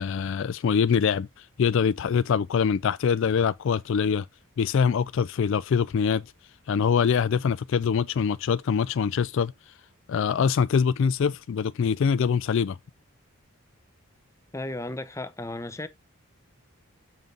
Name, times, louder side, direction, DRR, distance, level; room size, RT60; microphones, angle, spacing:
voice 1, 0.0-4.3 4.6-6.2 6.7-9.5 10.1-12.8, left 6 dB, 55° left, 0.3 m, -24 dB
voice 2, 14.5-15.9, left 2 dB, 15° left, 0.6 m, -34 dB
7.3 x 3.7 x 5.2 m
head